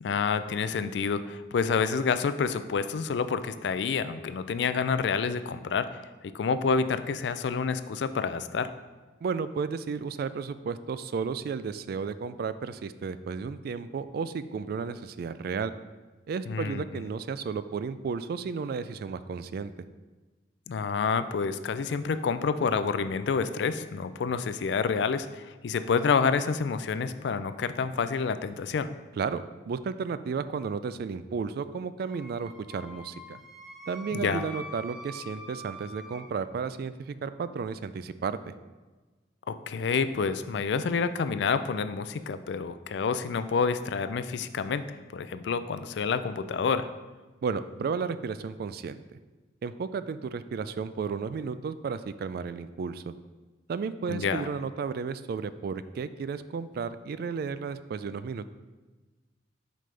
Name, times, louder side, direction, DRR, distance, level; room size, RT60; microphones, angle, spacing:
voice 1, 0.0-5.9 6.3-8.7 16.5-16.8 20.7-28.9 34.1-34.5 39.5-46.9 54.1-54.5, left 5 dB, 70° left, 12 dB, 0.4 m, -28 dB
voice 2, 9.2-15.7 16.3-19.7 29.2-33.4 33.9-38.5 47.4-49.0 49.6-53.1 53.7-58.5, right 5 dB, 55° right, 13 dB, 0.3 m, -33 dB
Wind instrument woodwind instrument, 32.1-36.2, equal, 5° right, 0.6 m, -44 dB
7.5 x 5.2 x 3.3 m, 1.3 s
head